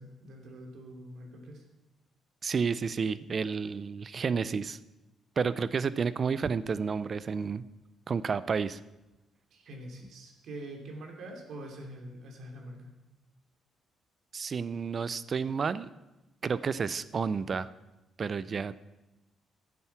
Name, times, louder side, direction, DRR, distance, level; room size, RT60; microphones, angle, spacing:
voice 1, 0.0-1.6 9.5-12.9, right 1 dB, 70° right, 1 dB, 2.8 m, -45 dB
voice 2, 2.4-4.8 5.4-7.6 8.1-8.8 14.3-15.9 16.4-17.7 18.2-18.8, right 5 dB, 45° right, 16 dB, 0.5 m, -31 dB
12.0 x 9.2 x 5.9 m, 1.0 s
cardioid pair, 90°, 0 cm